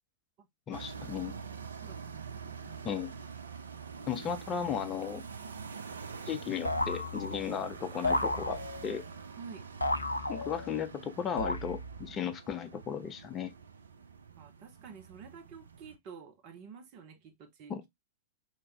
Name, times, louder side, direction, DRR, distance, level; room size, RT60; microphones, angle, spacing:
voice 1, 0.7-1.3 2.8-3.1 4.1-5.2 6.3-9.0 10.3-13.5 17.7-17.9, left 8 dB, 25° left, 0.7 m, -35 dB
sound 1, 0.7-16.0, right 6 dB, 70° right, 0.6 m, -46 dB
voice 2, 1.8-2.9 9.4-9.6 14.4-17.7, right 6 dB, 40° right, 1.0 m, -50 dB
sound 2, 6.6-7.6 8.0-9.0 9.8-10.8 11.4-12.1, left 2 dB, 85° left, 0.4 m, -33 dB
5.0 x 2.8 x 2.9 m
figure-of-eight pair, 100°, 0 cm